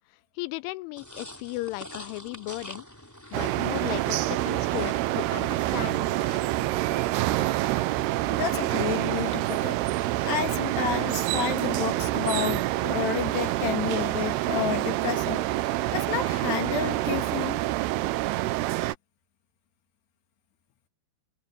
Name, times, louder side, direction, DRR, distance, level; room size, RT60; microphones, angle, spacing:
voice 1, 0.4-2.9 3.3-6.0, left 20 dB, 90° left, 3.2 m, -35 dB
sound 1, 1.0-14.7, left 1 dB, 5° left, 2.1 m, -48 dB
sound 2, 3.3-18.9, right 17 dB, 85° right, 2.4 m, -27 dB
voice 2, 8.2-9.8 10.2-15.5 15.9-17.6, left 9 dB, 65° left, 4.4 m, -30 dB
omnidirectional pair, 5.4 m